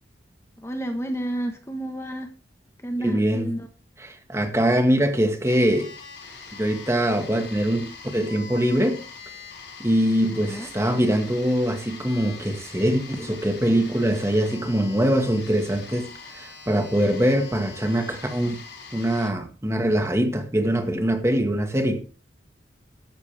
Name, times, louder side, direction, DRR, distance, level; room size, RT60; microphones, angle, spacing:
voice 1, 0.6-2.3 2.8-3.7 10.5-10.7, right 1 dB, 15° left, 1.3 m, -30 dB
voice 2, 3.0-3.5 4.1-5.9 6.5-9.0 9.8-18.6 18.9-22.0, equal, 15° right, 1.6 m, -23 dB
sound 1, 5.4-19.3, left 5 dB, 70° left, 5.4 m, -43 dB
14.5 x 12.0 x 3.5 m
head